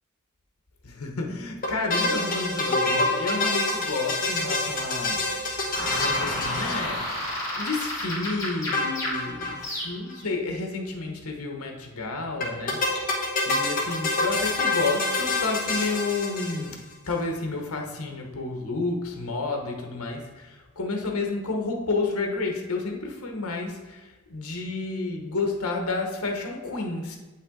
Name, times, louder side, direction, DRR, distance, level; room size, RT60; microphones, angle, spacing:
voice 1, 0.8-12.8 13.4-27.2, left 3 dB, 90° left, 2 dB, 1.1 m, -31 dB
sound 1, 1.6-7.4 8.7-9.6 9.8-9.9 10.1-10.2 12.4-16.9, left 2 dB, 40° left, 1.4 m, -27 dB
sound 2, 5.7-10.2, left 1 dB, 15° left, 2.5 m, -32 dB
8.3 x 5.7 x 3.8 m, 1.2 s
head